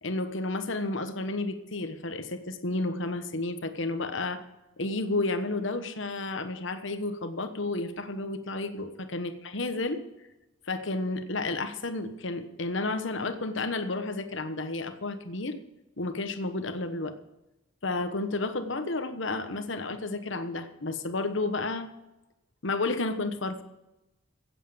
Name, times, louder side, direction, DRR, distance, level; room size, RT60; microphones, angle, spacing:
voice 1, 0.0-4.4 4.8-10.0 10.7-15.6 16.0-17.1 17.8-21.9 22.6-23.6, left 2 dB, 70° left, 9 dB, 1.2 m, -31 dB
15.5 x 8.4 x 7.0 m, 0.98 s
head